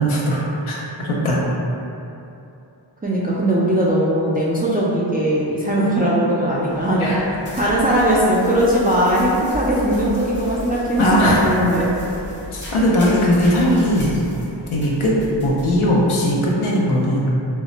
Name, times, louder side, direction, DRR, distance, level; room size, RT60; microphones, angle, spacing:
voice 1, 0.0-1.4 7.0-7.3 7.6-7.7 11.0-11.5 12.5-14.1 14.7-17.3, equal, 85° left, -4 dB, 0.6 m, -19 dB
voice 2, 3.0-7.2 7.5-11.9, right 1 dB, 20° right, -7 dB, 0.3 m, -19 dB
sound 1, 6.5-16.5, equal, 25° left, 0.6 m, -35 dB
2.1 x 2.0 x 3.7 m, 2.8 s
wide cardioid pair, 50°, 48 cm